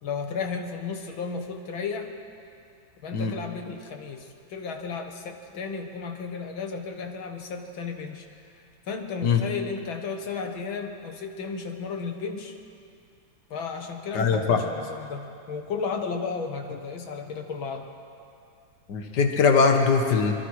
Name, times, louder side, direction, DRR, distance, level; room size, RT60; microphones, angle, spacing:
voice 1, 0.0-2.1 3.0-8.3 8.9-12.5 13.5-17.9, left 5 dB, 70° left, 5 dB, 2.3 m, -34 dB
voice 2, 14.1-14.6 18.9-20.3, left 5 dB, 55° left, 4 dB, 2.1 m, -21 dB
25.0 x 23.5 x 4.9 m, 2.5 s
omnidirectional pair, 2.3 m